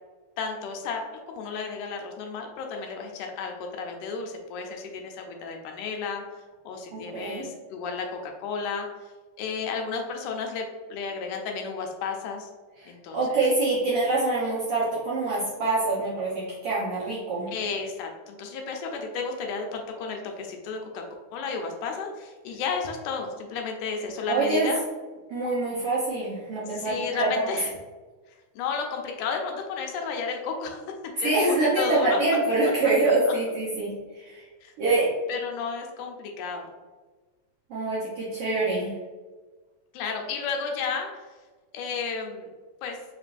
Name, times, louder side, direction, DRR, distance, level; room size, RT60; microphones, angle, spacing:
voice 1, 0.4-1.0 1.3-6.2 6.7-8.9 9.4-12.5 12.9-13.4 17.5-21.0 21.3-24.8 26.7-27.7 28.6-30.8 31.2-31.4 31.8-32.2 33.3-33.4 34.6-35.0 35.3-36.7 39.9-41.1 41.7-42.5 42.8-43.0, left 5 dB, 80° left, 2 dB, 2.0 m, -32 dB
voice 2, 6.9-7.4 12.8-17.5 24.3-24.7 25.3-27.5 31.2-34.4 34.8-35.1 37.7-38.9, right 2 dB, 70° right, -8 dB, 1.4 m, -25 dB
5.2 x 3.0 x 2.5 m, 1.3 s
omnidirectional pair, 3.6 m